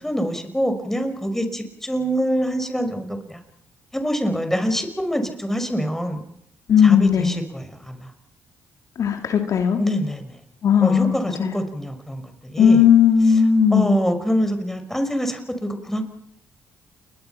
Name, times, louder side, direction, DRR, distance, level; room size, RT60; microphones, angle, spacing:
voice 1, 0.0-3.4 3.9-6.2 6.8-8.1 9.8-10.4 10.8-12.8 13.7-16.0, equal, 5° left, 7 dB, 5.8 m, -25 dB
voice 2, 6.7-7.4 9.0-9.8 10.6-11.6 12.6-13.9, left 7 dB, 60° left, 5 dB, 2.6 m, -16 dB
29.5 x 21.5 x 5.9 m, 0.71 s
hypercardioid pair, 50°, 6 cm